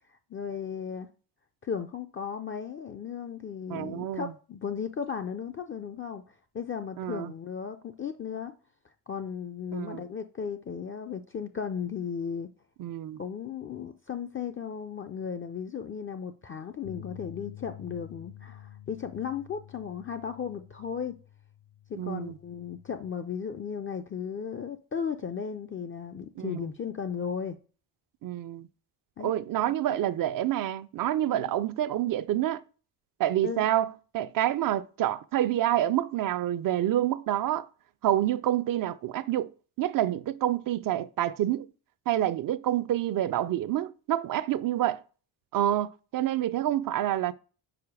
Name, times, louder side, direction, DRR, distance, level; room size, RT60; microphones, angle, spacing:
voice 1, 0.3-1.1 1.6-8.5 9.1-12.5 13.2-21.2 21.9-27.6 29.2-29.3 29.9-30.0 31.3-31.5 33.4-33.7, left 7 dB, 30° left, 0.4 m, -35 dB
voice 2, 3.7-4.3 7.0-7.3 9.7-10.0 12.8-13.2 22.0-22.4 26.4-26.7 28.2-28.7 29.2-32.6 33.2-37.7 38.0-39.5 39.8-41.7 42.1-45.0 45.5-47.3, right 12 dB, 45° right, 0.4 m, -28 dB
sound 1, 16.8-23.1, left 12 dB, 75° left, 0.6 m, -49 dB
4.9 x 4.6 x 4.7 m
supercardioid pair, 75°, 47 cm